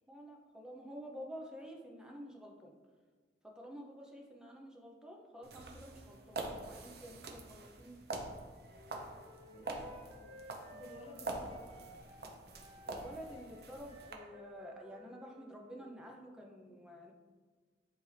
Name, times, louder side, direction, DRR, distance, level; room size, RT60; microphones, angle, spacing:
voice 1, 0.1-2.7 3.5-8.0 12.8-17.1, equal, 5° right, -1 dB, 0.7 m, -50 dB
sound 1, 5.4-14.1, right 2 dB, 60° right, 0.8 m, -45 dB
Wind instrument woodwind instrument, 8.7-16.1, left 1 dB, 35° right, 1.6 m, -56 dB
voice 2, 9.4-10.4 10.7-11.8, left 1 dB, 35° left, 2 dB, 0.6 m, -55 dB
10.5 x 3.5 x 3.3 m, 1.5 s
head